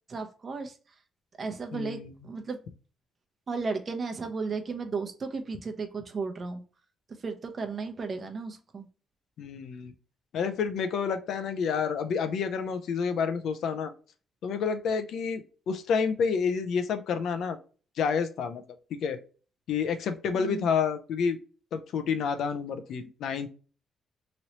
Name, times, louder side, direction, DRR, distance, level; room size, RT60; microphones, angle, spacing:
voice 1, 0.1-0.8 1.4-2.6 3.5-6.6 7.2-8.9 20.3-20.7, right 4 dB, 40° right, 0.7 m, -34 dB
voice 2, 1.7-2.1 9.4-9.9 10.3-13.9 14.4-17.6 18.0-18.6 18.9-19.2 19.7-21.4 21.7-23.5, left 6 dB, 75° left, 0.5 m, -29 dB
3.1 x 2.7 x 2.9 m
cardioid pair, 90°, 0 cm